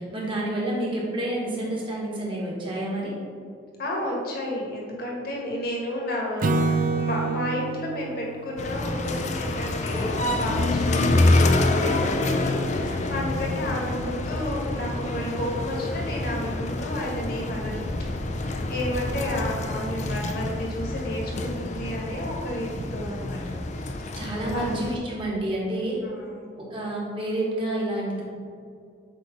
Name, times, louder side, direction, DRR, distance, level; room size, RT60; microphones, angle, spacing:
voice 1, 0.1-3.1 13.1-13.7 24.1-26.0 26.6-28.2, right 1 dB, 30° right, -5 dB, 1.7 m, -29 dB
voice 2, 3.8-17.8 18.2-24.8 26.0-26.5, left 1 dB, 55° left, -2 dB, 1.5 m, -32 dB
Acoustic guitar / Strum, 6.4-9.7, right 3 dB, 45° right, 0.4 m, -28 dB
sound 1, 8.6-24.9, left 2 dB, 40° left, 0.5 m, -27 dB
7.8 x 3.2 x 5.2 m, 2.3 s
head